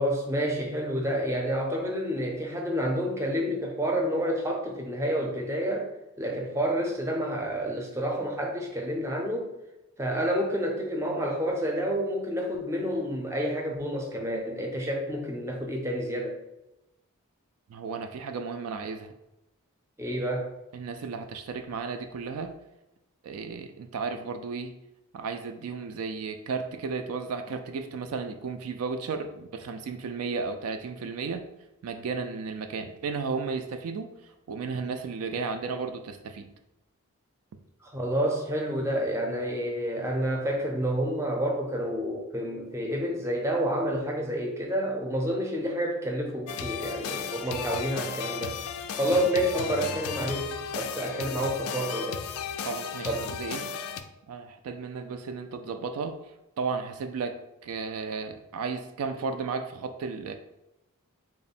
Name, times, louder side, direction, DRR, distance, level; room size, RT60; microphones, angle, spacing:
voice 1, 0.0-5.9 6.2-9.5 10.0-16.4 20.0-20.5 37.8-48.6 49.0-52.2 53.0-53.4, equal, 10° right, 1 dB, 0.5 m, -29 dB
voice 2, 17.7-19.1 20.7-22.5 23.2-24.8 25.1-31.5 31.8-36.5 49.1-49.5 52.6-53.6 54.3-56.2 56.6-60.3, right 4 dB, 70° right, 7 dB, 0.3 m, -34 dB
sound 1, 46.5-54.0, left 7 dB, 70° left, 0.3 m, -35 dB
3.5 x 2.0 x 4.1 m, 0.93 s
head